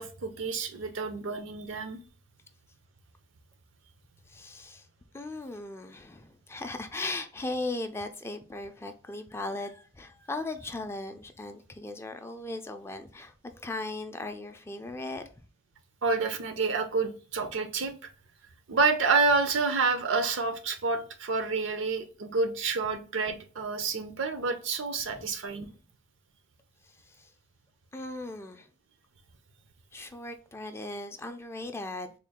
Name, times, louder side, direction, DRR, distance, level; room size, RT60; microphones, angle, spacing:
voice 1, 0.0-2.0 16.0-17.9 18.7-25.7, right 4 dB, 75° right, 0.6 m, -28 dB
voice 2, 4.3-4.9 5.1-15.3 25.1-25.2 26.8-27.3 27.9-28.7 29.9-32.1, left 2 dB, 15° left, 0.3 m, -38 dB
3.6 x 2.3 x 3.5 m
head